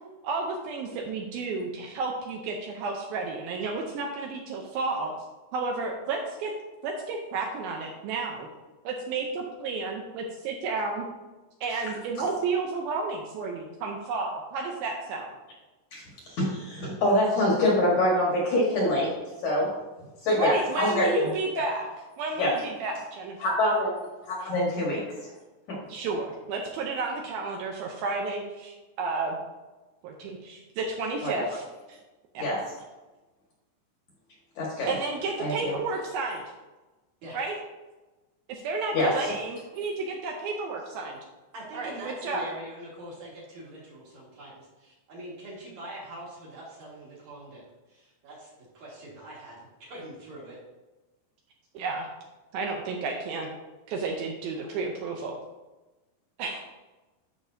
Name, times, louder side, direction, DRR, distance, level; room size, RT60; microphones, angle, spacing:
voice 1, 0.2-5.1 5.5-6.5 6.8-8.5 8.8-11.1 11.6-15.3 20.3-21.9 22.2-23.6 24.4-24.5 25.9-29.4 30.0-32.0 32.3-32.5 34.9-36.4 37.3-37.6 38.5-41.2 41.7-42.4 51.7-52.1 52.5-53.5 53.9-55.4 56.4-56.6, right 4 dB, 75° right, 1 dB, 2.3 m, -32 dB
voice 2, 16.3-19.1 19.4-19.7 20.2-21.3 22.4-22.5 23.4-23.9 24.3-25.3 25.7-25.8 31.2-31.4 32.4-32.6 34.6-34.9 35.4-35.7 38.9-39.1, left 1 dB, 55° left, -4 dB, 2.4 m, -25 dB
voice 3, 41.5-48.5 48.7-50.6 54.5-54.7 56.4-56.5, right 1 dB, 55° right, -5 dB, 2.6 m, -43 dB
13.0 x 5.2 x 2.7 m, 1.1 s
omnidirectional pair, 4.7 m